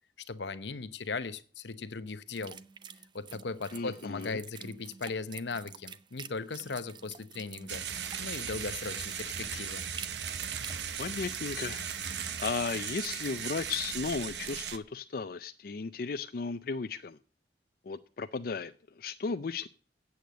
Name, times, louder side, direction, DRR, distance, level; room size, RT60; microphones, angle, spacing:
voice 1, 0.3-2.6 3.1-7.8 8.2-9.8, left 4 dB, 80° left, 0.8 m, -38 dB
sound 1, 2.3-13.4, right 6 dB, 25° right, 0.5 m, -49 dB
voice 2, 3.7-4.4 11.0-17.2 17.8-19.7, left 4 dB, 55° left, 0.4 m, -35 dB
The Little Stereo Engine that Could, 7.7-14.8, right 7 dB, 75° right, 1.0 m, -37 dB
8.5 x 7.9 x 9.1 m
head